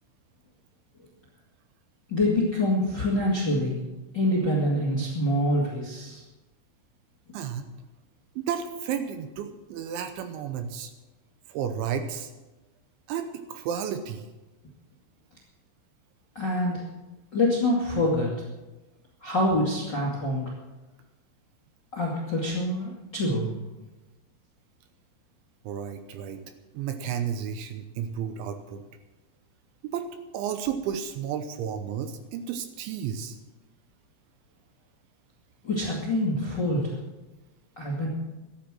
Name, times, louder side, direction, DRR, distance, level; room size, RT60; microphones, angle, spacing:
voice 1, 2.1-3.8 4.1-6.2 16.3-16.8 17.3-18.3 19.2-20.5 21.9-23.5 35.6-36.9 37.7-38.1, left 1 dB, 45° left, -4 dB, 1.4 m, -25 dB
voice 2, 7.3-7.7 8.4-10.9 11.5-12.3 13.1-14.2 25.6-26.4 26.7-28.8 29.9-30.1 30.3-33.4, right 8 dB, 75° right, 8 dB, 3.0 m, -32 dB
13.5 x 10.5 x 7.5 m, 1.1 s
omnidirectional pair, 5.8 m